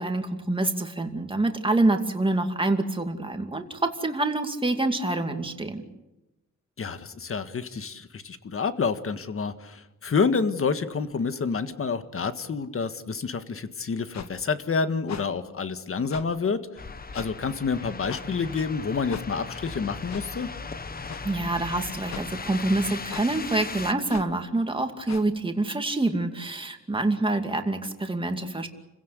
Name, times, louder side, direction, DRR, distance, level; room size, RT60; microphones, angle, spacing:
voice 1, 0.0-5.8 21.2-28.7, right 2 dB, 15° right, 5 dB, 2.5 m, -26 dB
voice 2, 6.8-16.6 17.1-20.5, left 5 dB, 45° left, 10 dB, 1.7 m, -28 dB
sound 1, 14.1-14.3 15.1-15.2 16.1-16.3 17.1-17.3 18.1-18.2 19.1-19.2 20.1-20.3 21.1-21.2 22.1-22.3 23.1-23.3 24.1-24.3 25.1-25.2, left 7 dB, 60° left, 1.6 m, -38 dB
sound 2, 16.8-23.9, left 4 dB, 30° left, 1.0 m, -38 dB
30.0 x 16.5 x 8.3 m, 0.99 s
wide cardioid pair, 125°, 30 cm